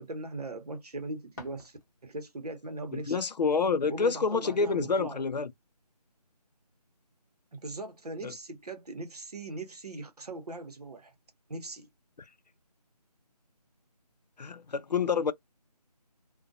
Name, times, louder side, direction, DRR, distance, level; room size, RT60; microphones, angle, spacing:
voice 1, 0.0-3.3 3.9-5.2 7.5-11.1 11.5-11.9, right 2 dB, 65° right, 0.8 m, -40 dB
sound 1, 1.2-2.3, left 2 dB, 30° left, 0.7 m, -51 dB
voice 2, 2.9-5.5 8.2-8.3 14.4-15.3, left 5 dB, 85° left, 0.5 m, -28 dB
2.4 x 2.2 x 2.6 m
figure-of-eight pair, 165°, 21 cm